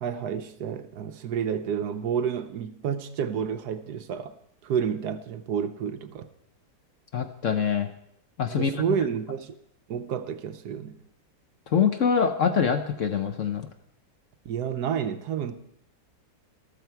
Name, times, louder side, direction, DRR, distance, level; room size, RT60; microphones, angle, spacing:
voice 1, 0.0-4.4 4.6-6.3 8.5-9.5 9.9-11.0 14.4-15.6, right 8 dB, 70° right, 1.2 m, -30 dB
voice 2, 7.1-7.9 8.4-8.8 11.7-13.7, left 6 dB, 55° left, 1.0 m, -24 dB
13.5 x 13.0 x 4.6 m
omnidirectional pair, 1.9 m